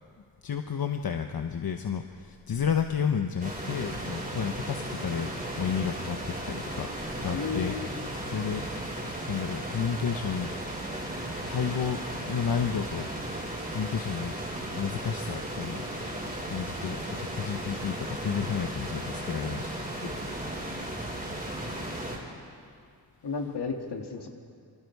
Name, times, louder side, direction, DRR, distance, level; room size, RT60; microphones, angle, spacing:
voice 1, 0.4-5.3 5.6-6.9 7.2-8.6 9.3-10.5 11.5-13.1 13.7-14.3 14.8-15.9 16.5-19.7, left 7 dB, 60° left, 5 dB, 1.0 m, -31 dB
sound 1, 3.4-22.2, right 1 dB, 20° right, 4.7 m, -35 dB
voice 2, 7.3-7.9 20.0-20.1 23.2-24.3, left 4 dB, 80° left, 2 dB, 2.4 m, -33 dB
27.0 x 25.5 x 4.8 m, 2.2 s
wide cardioid pair, 130°, 40 cm